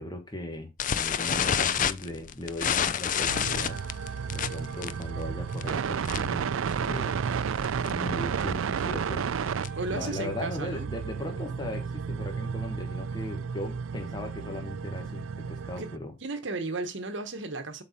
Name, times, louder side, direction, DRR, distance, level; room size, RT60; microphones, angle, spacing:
voice 1, 0.0-3.8 4.3-6.5 6.8-9.3 9.9-16.1, left 1 dB, 20° left, 1.3 m, -38 dB
sound 1, 0.8-6.4 6.7-7.0 7.2-7.3 7.6-7.9 8.4-9.9, left 8 dB, 40° left, 0.4 m, -29 dB
sound 2, 3.3-16.0, right 6 dB, 75° right, 0.4 m, -32 dB
voice 2, 9.7-10.9 15.8-15.9 16.2-17.8, right 3 dB, 60° right, 1.1 m, -34 dB
7.7 x 4.1 x 4.2 m
head